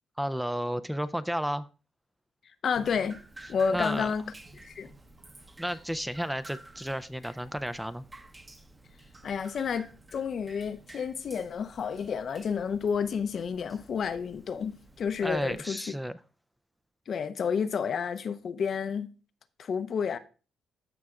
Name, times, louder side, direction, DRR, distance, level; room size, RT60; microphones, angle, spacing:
voice 1, 0.2-1.7 3.4-4.1 5.6-8.0 15.2-16.2, equal, 5° right, 0.4 m, -32 dB
voice 2, 2.6-3.2 3.5-4.2 4.6-4.9 9.2-15.8 17.1-19.1 19.6-20.2, left 6 dB, 55° left, 0.6 m, -30 dB
Drip, 2.7-15.6, right 2 dB, 20° right, 0.9 m, -52 dB
14.0 x 5.6 x 2.4 m
cardioid pair, 90°, 0 cm